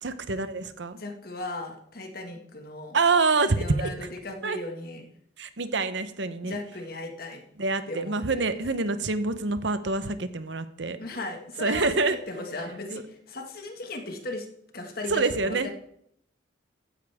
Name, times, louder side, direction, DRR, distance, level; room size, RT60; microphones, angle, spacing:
voice 1, 0.0-1.0 2.9-3.9 4.4-4.6 5.4-6.6 7.6-11.0 11.6-12.2 15.1-15.7, right 3 dB, 70° right, 11 dB, 1.0 m, -26 dB
voice 2, 1.0-3.0 3.6-5.1 6.4-7.4 7.9-8.4 11.0-14.5 14.7-15.7, left 2 dB, 50° left, 4 dB, 1.9 m, -37 dB
15.0 x 10.0 x 3.6 m, 0.71 s
head